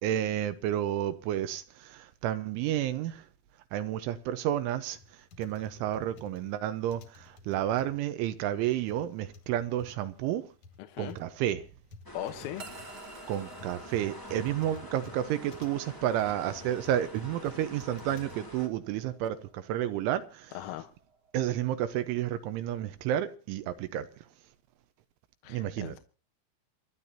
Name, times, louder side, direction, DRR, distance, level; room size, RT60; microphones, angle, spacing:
voice 1, 0.0-3.3 3.7-5.0 5.4-10.5 11.0-11.6 13.3-20.5 21.3-24.1 25.5-26.0, right 11 dB, 80° right, 3.1 m, -31 dB
sound 1, 4.9-18.4, left 3 dB, 50° left, 2.3 m, -53 dB
voice 2, 10.8-11.2 12.1-12.7 20.5-20.9 25.4-26.0, left 13 dB, 80° left, 3.6 m, -39 dB
sound 2, 12.0-18.7, left 1 dB, 20° left, 0.6 m, -46 dB
sound 3, 12.6-22.9, right 3 dB, 55° right, 1.1 m, -54 dB
27.5 x 11.5 x 2.7 m
omnidirectional pair, 5.9 m